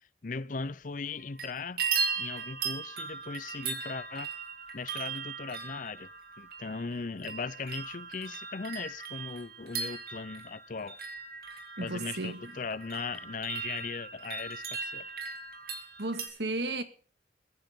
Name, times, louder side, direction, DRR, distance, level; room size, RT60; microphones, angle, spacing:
voice 1, 0.2-1.9 2.2-4.3 4.7-6.1 6.4-11.0 11.8-15.1, left 4 dB, 45° left, 0.6 m, -38 dB
sound 1, 1.1-1.5 1.8-16.3, right 5 dB, 55° right, 3.1 m, -38 dB
voice 2, 11.8-12.5 16.0-16.8, right 2 dB, 75° right, 2.0 m, -34 dB
22.5 x 10.5 x 3.8 m
head